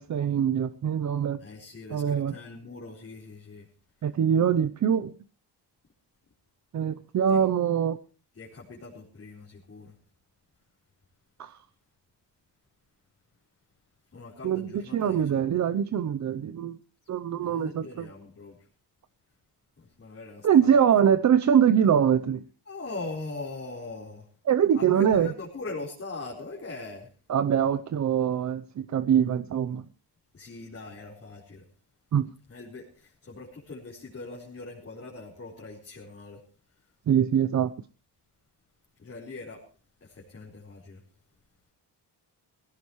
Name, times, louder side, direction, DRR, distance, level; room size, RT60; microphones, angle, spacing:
voice 1, 0.0-1.4 1.9-2.3 4.0-5.1 6.7-8.0 11.4-11.6 14.4-16.8 17.1-18.1 20.4-22.4 24.5-25.3 27.3-29.8 32.1-32.3 37.1-37.7, right 8 dB, 40° right, 11 dB, 0.7 m, -23 dB
voice 2, 1.4-3.7 7.3-7.4 8.4-9.9 14.1-15.6 17.3-18.6 19.8-21.3 22.7-24.3 24.7-27.1 30.3-31.6 32.5-36.4 39.0-39.6 40.0-41.0, left 3 dB, 30° left, -4 dB, 4.4 m, -41 dB
20.0 x 16.5 x 3.1 m, 0.36 s
cardioid pair, 125°, 43 cm